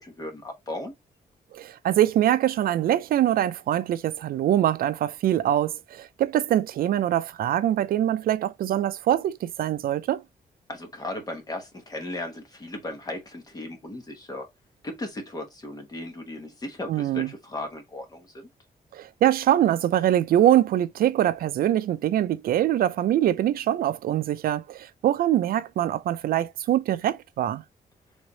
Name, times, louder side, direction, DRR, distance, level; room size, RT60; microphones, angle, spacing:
voice 1, 0.0-0.9 10.7-14.5 14.8-18.5, left 1 dB, 25° left, 1.2 m, -36 dB
voice 2, 1.5-10.2 16.9-17.3 18.9-27.6, right 12 dB, 75° right, 0.4 m, -23 dB
3.5 x 3.2 x 3.9 m
wide cardioid pair, 170°, 15 cm